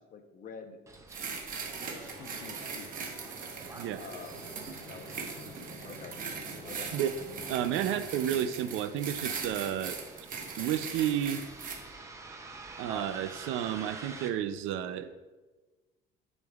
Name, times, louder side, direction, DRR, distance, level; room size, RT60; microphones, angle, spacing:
voice 1, 0.1-0.8 1.4-1.5 1.9-2.9 4.0-4.6 4.9-5.5 5.8-6.2 6.6-6.9 7.6-7.8, left 6 dB, 45° left, 6 dB, 0.7 m, -48 dB
Bus, 0.9-14.3, right 3 dB, 15° right, 0.6 m, -49 dB
sound 1, 1.1-11.8, right 5 dB, 45° right, 1.0 m, -40 dB
sound 2, 1.6-8.3, right 2 dB, 65° right, 1.5 m, -49 dB
voice 2, 7.5-10.0 10.6-11.4 12.8-15.1, right 10 dB, 85° right, 11 dB, 0.5 m, -31 dB
9.3 x 5.2 x 2.4 m, 1.2 s
cardioid pair, 145°, 20 cm